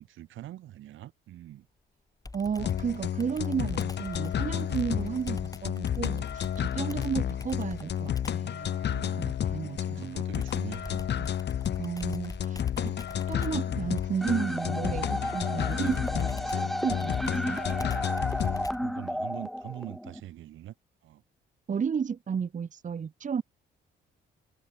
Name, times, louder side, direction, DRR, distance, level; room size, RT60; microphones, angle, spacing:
voice 1, 0.0-1.7 4.5-4.8 6.7-6.9 8.6-9.3 9.6-11.4 12.8-13.1 15.3-15.5 18.4-20.7 21.0-21.2, right 13 dB, 80° right, 4.8 m, -44 dB
Computer keyboard, 2.2-8.5 10.3-19.0, left 3 dB, 15° left, 2.7 m, -45 dB
voice 2, 2.3-8.7 9.2-10.2 11.1-11.3 11.8-12.9 13.3-17.6 21.7-23.4, right 6 dB, 40° right, 1.3 m, -33 dB
sound 1, 2.6-18.7, left 10 dB, 60° left, 1.8 m, -31 dB
sound 2, 14.2-20.2, equal, ahead, 1.0 m, -33 dB
cardioid pair, 90°, 20 cm